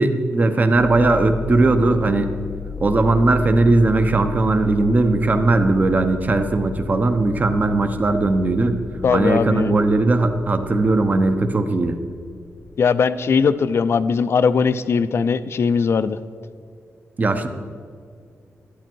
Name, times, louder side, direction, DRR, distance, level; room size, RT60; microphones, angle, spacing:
voice 1, 0.0-2.3 2.8-8.8 9.1-12.0 17.2-17.5, right 2 dB, 30° right, 8 dB, 0.8 m, -18 dB
sound 1, 0.7-13.4, left 5 dB, 30° left, 0.8 m, -35 dB
voice 2, 9.0-9.8 12.8-16.2, left 5 dB, 55° left, 13 dB, 0.5 m, -19 dB
12.5 x 11.5 x 4.6 m, 2.2 s
wide cardioid pair, 170°, 5 cm